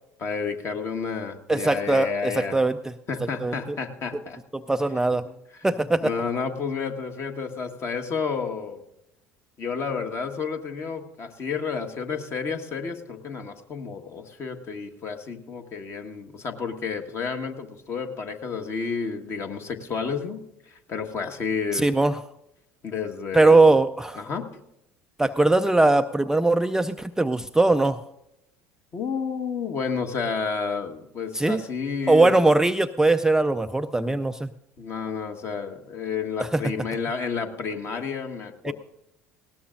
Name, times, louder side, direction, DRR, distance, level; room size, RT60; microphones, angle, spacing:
voice 1, 0.2-2.6 3.1-4.4 5.2-5.3 6.0-8.8 9.6-20.4 20.7-21.9 22.8-23.6 24.2-24.5 28.9-32.3 33.9-34.2 34.8-38.7, left 5 dB, 40° left, 5 dB, 1.5 m, -31 dB
voice 2, 1.5-2.8 3.4-3.8 4.1-4.2 4.5-5.3 5.6-6.1 21.7-22.2 23.3-24.2 25.2-28.0 31.3-31.6 32.1-34.5 36.4-36.6 38.6-38.7, right 2 dB, 10° right, 9 dB, 0.4 m, -20 dB
19.5 x 17.5 x 2.6 m, 0.85 s
figure-of-eight pair, 65°, 7 cm